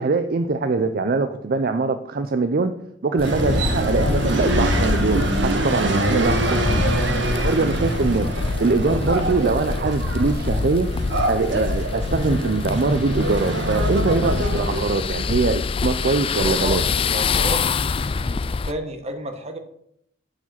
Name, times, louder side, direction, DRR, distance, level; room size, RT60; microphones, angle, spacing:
voice 1, 0.0-2.7 3.0-6.8 7.4-8.3 8.6-10.9 11.3-16.9, right 3 dB, 55° right, 9 dB, 0.5 m, -22 dB
sound 1, 3.2-18.7, left 4 dB, 30° left, 0.3 m, -25 dB
sound 2, 3.2-15.0, right 2 dB, 70° right, 1.7 m, -25 dB
voice 2, 16.4-16.8 17.1-17.7 18.2-19.6, right 1 dB, 35° right, 6 dB, 1.3 m, -31 dB
9.8 x 4.9 x 7.4 m, 0.74 s
head